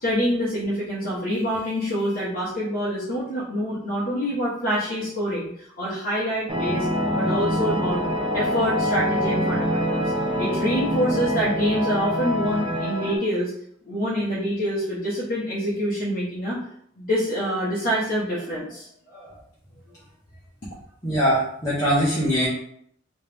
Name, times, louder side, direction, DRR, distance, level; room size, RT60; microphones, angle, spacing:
voice 1, 0.0-5.5 5.8-6.9 7.1-8.0 8.3-10.1 10.4-13.5 13.8-16.6 17.0-19.4, equal, 45° left, -9 dB, 1.0 m, -26 dB
sound 1, 6.5-13.2, equal, 25° right, 0.6 m, -25 dB
voice 2, 21.0-22.5, equal, 15° left, -10 dB, 1.0 m, -21 dB
3.2 x 2.9 x 3.4 m, 0.68 s
head